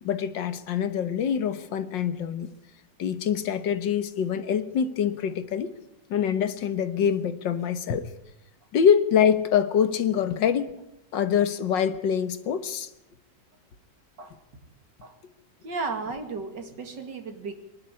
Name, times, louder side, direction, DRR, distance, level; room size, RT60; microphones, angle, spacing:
voice 1, 0.0-2.5 3.0-5.7 6.1-8.1 8.7-10.7 11.1-12.9, left 8 dB, 80° left, 1.9 m, -25 dB
voice 2, 15.6-17.5, right 4 dB, 70° right, 2.9 m, -34 dB
24.0 x 12.0 x 9.9 m
omnidirectional pair, 2.0 m